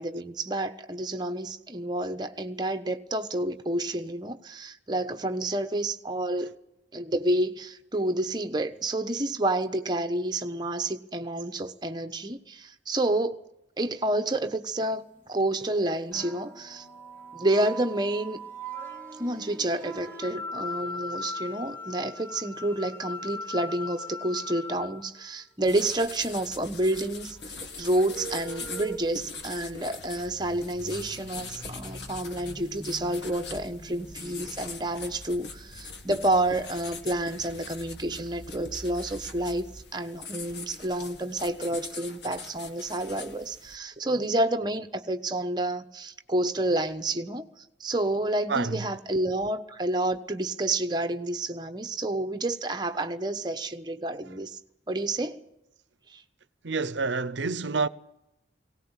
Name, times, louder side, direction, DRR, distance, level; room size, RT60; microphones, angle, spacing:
voice 1, 0.0-6.5 6.9-13.4 13.8-16.9 17.3-18.4 19.2-54.6 54.9-55.4 56.1-56.2, right 1 dB, 25° right, 1.2 m, -29 dB
sound 1, 16.1-25.2 27.8-29.0, left 1 dB, 10° left, 2.5 m, -39 dB
sound 2, 25.6-43.8, left 4 dB, 70° left, 2.2 m, -43 dB
sound 3, 26.2-39.8, equal, 40° left, 2.0 m, -48 dB
voice 2, 48.5-48.8 56.6-57.9, right 4 dB, 75° right, 0.8 m, -28 dB
19.5 x 18.0 x 9.0 m
head